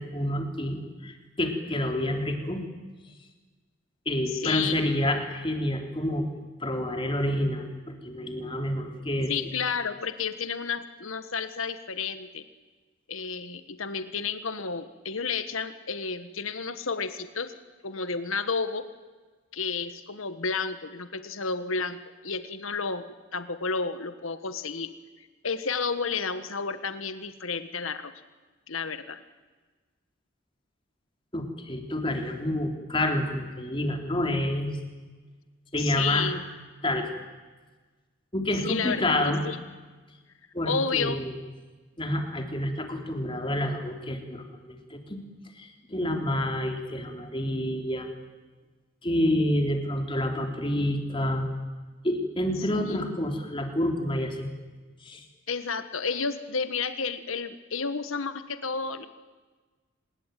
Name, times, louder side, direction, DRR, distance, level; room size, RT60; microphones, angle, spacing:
voice 1, 0.0-2.6 4.0-6.3 6.6-7.7 8.0-9.3 31.3-34.7 35.7-36.3 36.8-37.1 38.3-39.4 40.5-41.3 42.0-45.2 45.6-48.1 49.0-51.5 52.0-54.5 55.0-55.2, left 1 dB, 25° left, 4 dB, 3.4 m, -28 dB
voice 2, 4.3-4.9 9.3-12.4 13.1-17.5 17.8-18.9 19.5-23.0 23.3-24.9 25.4-28.1 28.7-29.2 35.8-36.5 38.6-39.6 40.6-41.2 52.7-53.1 55.5-59.1, left 5 dB, 75° left, 11 dB, 1.5 m, -31 dB
26.0 x 21.0 x 9.2 m, 1.3 s
head